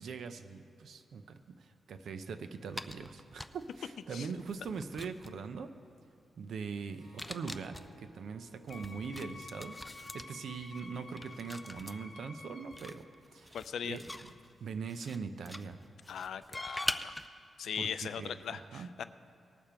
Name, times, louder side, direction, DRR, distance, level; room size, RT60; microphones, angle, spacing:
voice 1, 0.0-5.8 6.4-9.8 10.1-13.1 13.3-13.6 13.8-14.3 14.6-15.8 17.8-17.9 18.2-18.9, right 5 dB, 75° right, 10 dB, 0.6 m, -42 dB
sound 1, 2.7-3.8 4.4-5.5 7.0-7.9 8.7-11.9 12.7-15.2 15.5-17.3, left 1 dB, 5° left, 0.3 m, -43 dB
Harp, 6.9-11.9, right 2 dB, 50° right, 3.0 m, -62 dB
Wind instrument woodwind instrument, 8.7-13.0, left 3 dB, 60° left, 1.4 m, -50 dB
voice 2, 13.5-14.0 16.1-17.2 17.6-19.0, left 8 dB, 85° left, 12 dB, 0.4 m, -39 dB
19.0 x 6.8 x 4.3 m, 2.5 s
wide cardioid pair, 160°, 0 cm